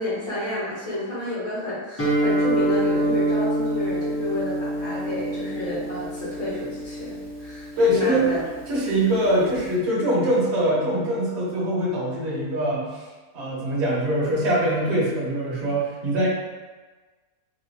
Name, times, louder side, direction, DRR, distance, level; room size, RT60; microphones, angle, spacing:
voice 1, 0.0-8.4 9.3-9.5, left 1 dB, 70° left, -11 dB, 2.0 m, -30 dB
Guitar, 2.0-9.7, right 1 dB, 15° left, 0.4 m, -27 dB
voice 2, 7.8-8.3 8.7-13.1 13.3-16.3, right 1 dB, 50° right, -6 dB, 1.1 m, -23 dB
4.0 x 2.4 x 2.8 m, 1.3 s
omnidirectional pair, 1.6 m